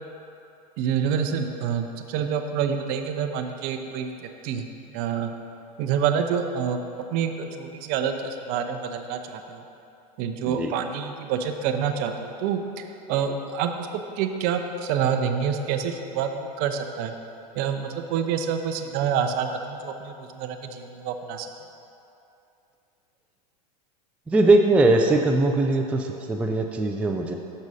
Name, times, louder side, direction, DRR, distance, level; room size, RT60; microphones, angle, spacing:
voice 1, 0.8-5.3 5.8-6.8 7.1-9.6 10.2-17.1 17.5-21.5, right 7 dB, 50° right, 6 dB, 0.6 m, -27 dB
voice 2, 24.3-27.4, right 2 dB, 5° right, 2 dB, 0.3 m, -20 dB
6.4 x 6.1 x 4.1 m, 2.8 s
hypercardioid pair, 115°, 20 cm